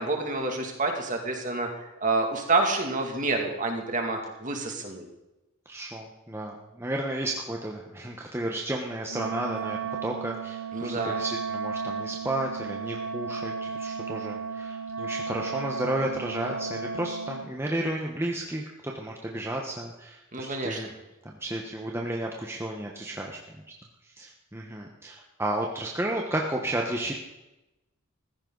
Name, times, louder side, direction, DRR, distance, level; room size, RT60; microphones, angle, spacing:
voice 1, 0.0-5.1 10.7-11.2 20.3-20.9, right 3 dB, 40° right, 2 dB, 2.5 m, -28 dB
voice 2, 5.7-20.9 21.4-23.4 24.2-27.1, right 1 dB, 10° right, 0 dB, 1.2 m, -32 dB
Wind instrument woodwind instrument, 9.1-17.5, right 5 dB, 75° right, 1.0 m, -34 dB
15.5 x 14.5 x 4.0 m, 0.96 s
head